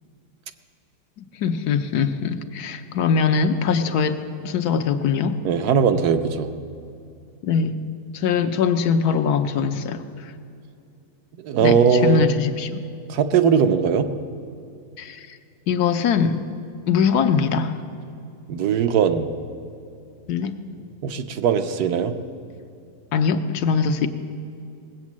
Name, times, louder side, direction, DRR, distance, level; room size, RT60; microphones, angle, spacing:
voice 1, 1.2-4.2 4.4-5.4 7.4-7.8 8.1-10.3 11.6-12.8 15.0-15.4 15.7-16.4 16.9-17.8 20.3-20.6 23.1-24.1, left 6 dB, 75° left, 7 dB, 1.2 m, -22 dB
voice 2, 5.4-6.5 11.4-12.3 13.1-14.1 18.5-19.3 21.0-22.1, right 7 dB, 70° right, 8 dB, 1.2 m, -19 dB
18.5 x 8.1 x 7.3 m, 2.5 s
omnidirectional pair, 1.8 m